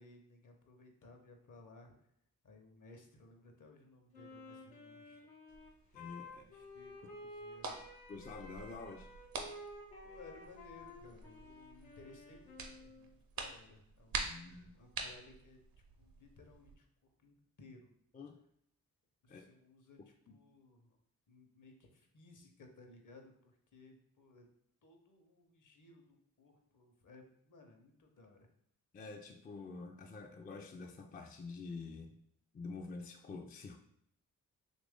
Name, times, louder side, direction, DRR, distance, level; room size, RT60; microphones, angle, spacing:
voice 1, 0.0-1.9 2.4-5.3 6.3-7.8 10.0-15.6 16.0-16.9 17.2-17.9 19.2-21.0 21.3-24.5 24.8-28.5, left 2 dB, 55° left, 4 dB, 0.8 m, -59 dB
Wind instrument woodwind instrument, 4.1-13.1, left 2 dB, 85° left, 0.9 m, -53 dB
sound 1, 5.5-16.8, right 4 dB, 65° right, 0.6 m, -47 dB
voice 2, 5.9-6.5 7.0-7.2 8.1-9.1 14.2-14.8 18.1-18.4 19.3-19.5 20.3-20.4 28.9-32.2 32.5-33.8, left 4 dB, 25° left, 3 dB, 0.3 m, -47 dB
3.0 x 2.5 x 3.5 m, 0.71 s
cardioid pair, 50°, 36 cm